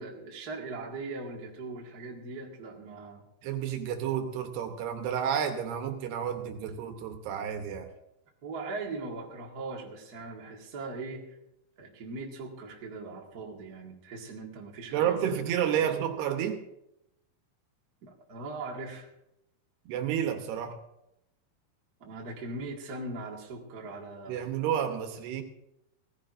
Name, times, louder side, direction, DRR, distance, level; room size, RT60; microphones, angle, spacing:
voice 1, 0.0-3.2 8.4-11.2 11.8-15.4 15.7-15.9 18.0-19.1 22.0-24.4, right 3 dB, 40° right, -1 dB, 1.4 m, -40 dB
voice 2, 3.4-7.9 14.9-16.6 19.9-20.8 24.3-25.4, right 9 dB, 80° right, 6 dB, 3.1 m, -30 dB
19.0 x 15.0 x 2.6 m, 0.85 s
omnidirectional pair, 4.8 m